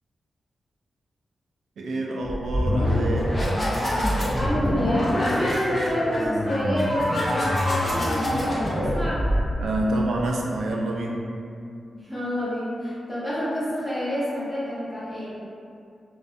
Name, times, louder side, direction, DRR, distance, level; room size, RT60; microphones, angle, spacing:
voice 1, 1.8-3.4 9.6-11.3, right 1 dB, 85° right, -1 dB, 0.3 m, -27 dB
sound 1, 2.2-9.9, equal, 30° left, 0.6 m, -25 dB
voice 2, 4.3-9.3 11.9-15.4, equal, ahead, -11 dB, 0.8 m, -28 dB
2.5 x 2.3 x 2.4 m, 2.4 s
wide cardioid pair, 135°, 0 cm